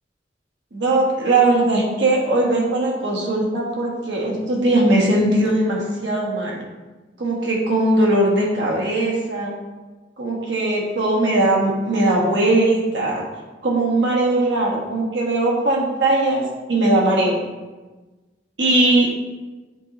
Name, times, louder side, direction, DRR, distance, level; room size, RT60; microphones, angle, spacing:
voice 1, 0.7-6.6 7.2-9.6 10.2-13.2 13.6-16.4 16.7-17.4 18.6-19.1, right 2 dB, 80° right, -3 dB, 1.5 m, -19 dB
7.8 x 3.0 x 4.1 m, 1.2 s
head